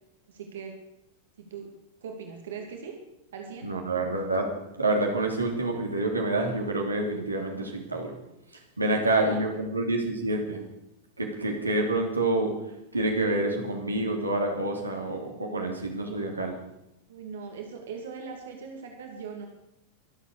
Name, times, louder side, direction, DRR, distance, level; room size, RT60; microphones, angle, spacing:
voice 1, 0.3-0.8 1.4-1.7 2.0-3.0 3.3-3.7 8.8-9.5 17.1-19.5, right 6 dB, 60° right, 2 dB, 2.6 m, -40 dB
voice 2, 3.6-4.5 4.8-8.1 8.8-10.6 11.2-12.5 12.9-16.6, right 2 dB, 80° right, 1 dB, 3.0 m, -27 dB
24.5 x 8.3 x 6.7 m, 0.87 s
figure-of-eight pair, 90°, 0 cm